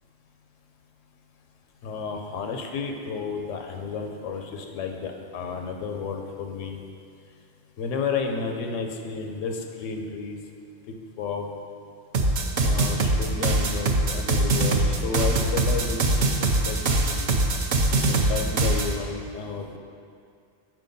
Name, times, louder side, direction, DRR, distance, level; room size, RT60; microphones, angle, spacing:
voice 1, 1.8-6.8 7.8-10.4 10.9-11.5 12.6-16.2 16.6-17.3 18.1-19.8, left 5 dB, 85° left, 3 dB, 1.0 m, -32 dB
sound 1, 12.1-18.9, right 2 dB, 55° right, 0.6 m, -22 dB
6.1 x 4.4 x 5.2 m, 2.4 s
omnidirectional pair, 1.3 m